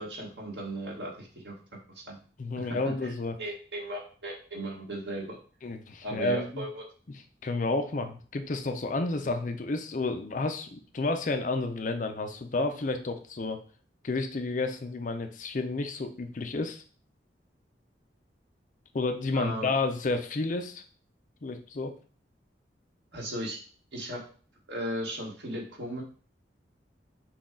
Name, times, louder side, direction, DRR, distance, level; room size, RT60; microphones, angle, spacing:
voice 1, 0.0-1.5 1.9-2.2 2.6-2.9 3.4-5.4 6.0-6.8 19.3-19.7 23.1-23.6 23.9-24.2 24.7-26.0, right 1 dB, 75° right, -1 dB, 1.4 m, -36 dB
voice 2, 2.4-3.4 5.6-6.7 7.4-13.6 14.0-16.8 18.9-20.8 21.4-22.0, left 3 dB, 45° left, 7 dB, 0.5 m, -31 dB
5.9 x 2.3 x 3.7 m, 0.41 s
head